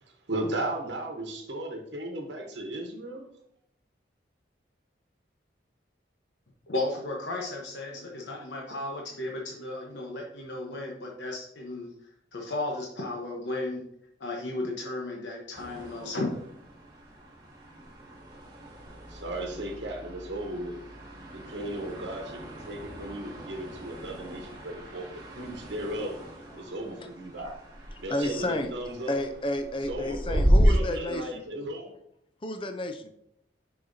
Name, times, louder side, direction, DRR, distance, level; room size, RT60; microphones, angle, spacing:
voice 1, 0.0-3.3 19.1-20.8 21.3-26.1 26.5-27.6 28.0-29.2 29.9-32.0, right 1 dB, 75° right, 2 dB, 1.1 m, -36 dB
voice 2, 6.7-11.9 12.3-13.8 14.2-16.4, left 2 dB, 75° left, -1 dB, 1.0 m, -34 dB
sound 1, 15.5-30.6, equal, 20° right, 1.2 m, -34 dB
voice 3, 28.1-28.7 29.1-31.4 32.4-33.1, left 1 dB, 25° left, 7 dB, 0.5 m, -31 dB
6.5 x 5.7 x 2.7 m, 0.74 s
head